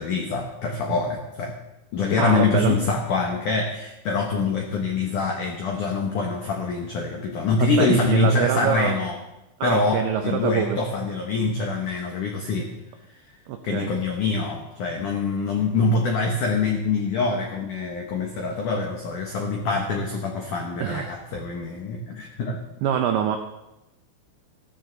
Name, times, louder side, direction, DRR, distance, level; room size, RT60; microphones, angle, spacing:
voice 1, 0.0-1.6 1.9-9.2 9.6-12.7 13.6-22.6, left 3 dB, 85° left, 1 dB, 1.7 m, -25 dB
voice 2, 2.2-2.8 7.8-9.0 9.6-10.8 13.5-13.9 20.8-21.2 22.8-23.4, right 8 dB, 85° right, 5 dB, 2.3 m, -24 dB
15.0 x 13.5 x 4.0 m, 0.97 s
omnidirectional pair, 5.6 m